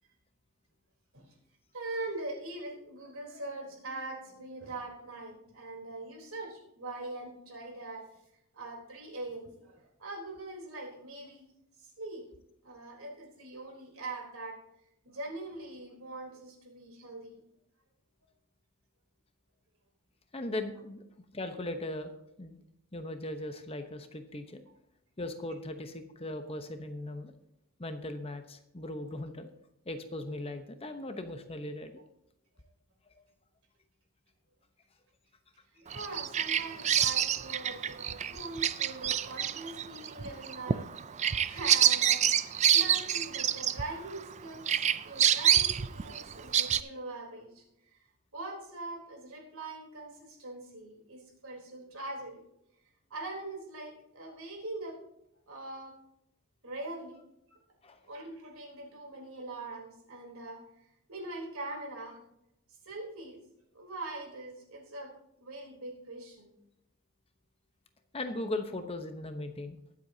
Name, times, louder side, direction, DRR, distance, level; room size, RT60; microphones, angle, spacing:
voice 1, 1.7-8.1 8.5-11.5 11.8-12.3 12.6-14.6 15.0-17.4 35.7-40.9 41.5-47.6 47.9-48.0 48.3-52.4 53.1-55.0 55.5-56.0 56.6-57.2 58.0-60.6 61.1-62.2 62.8-63.4 63.7-66.5, right 2 dB, 70° right, 0 dB, 3.7 m, -42 dB
voice 2, 20.3-21.0 21.3-22.1 22.4-22.6 22.9-24.6 25.2-27.3 27.8-29.5 29.9-32.0 57.8-58.0 68.1-69.8, left 1 dB, 25° left, 7 dB, 0.9 m, -38 dB
Bird vocalization bird call bird song, 35.9-44.3 44.7-46.8, right 9 dB, 30° right, 0.4 m, -27 dB
22.5 x 8.0 x 2.8 m, 0.81 s
head